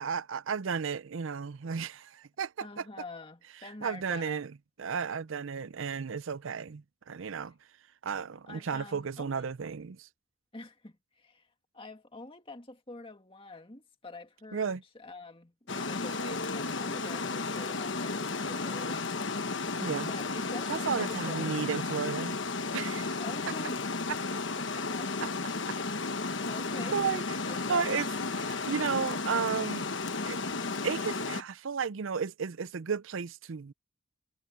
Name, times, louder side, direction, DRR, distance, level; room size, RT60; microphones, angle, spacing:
voice 1, 0.0-2.9 3.8-4.5 4.8-7.5 8.0-10.1 14.5-14.8 19.8-20.1 20.7-22.4 22.7-23.1 26.9-27.2 27.7-28.1 28.4-29.9 30.2-30.4 30.8-33.7, right 6 dB, 70° right, 0.5 m, -33 dB
voice 2, 2.6-4.4 8.5-9.4 10.5-11.5 11.7-19.0 20.1-21.6 23.2-23.9 24.6-26.0 26.5-27.0 27.4-28.0, left 2 dB, 25° left, 2.1 m, -46 dB
Water, 15.7-31.4, left 3 dB, 60° left, 1.2 m, -33 dB
head